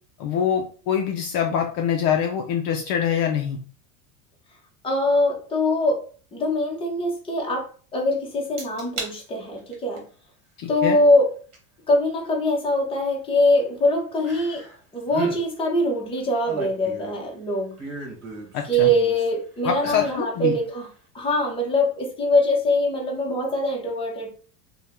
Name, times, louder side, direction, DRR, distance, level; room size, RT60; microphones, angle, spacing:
voice 1, 0.2-3.6 10.6-11.0 18.5-18.9 19.6-20.6, left 8 dB, 45° left, 2 dB, 0.5 m, -24 dB
voice 2, 4.8-10.0 10.7-11.3 11.9-14.6 14.9-17.8 18.7-20.9 21.1-24.3, left 1 dB, 10° left, 0 dB, 0.7 m, -23 dB
sound 1, 8.6-9.1 9.6-10.0 11.5-11.6 14.2-14.8 15.1-15.4 16.2-17.3 17.8-19.3 19.7-20.2 20.7-20.8, right 3 dB, 35° right, 1.2 m, -35 dB
2.7 x 2.2 x 3.4 m, 0.41 s
supercardioid pair, 125°, 46 cm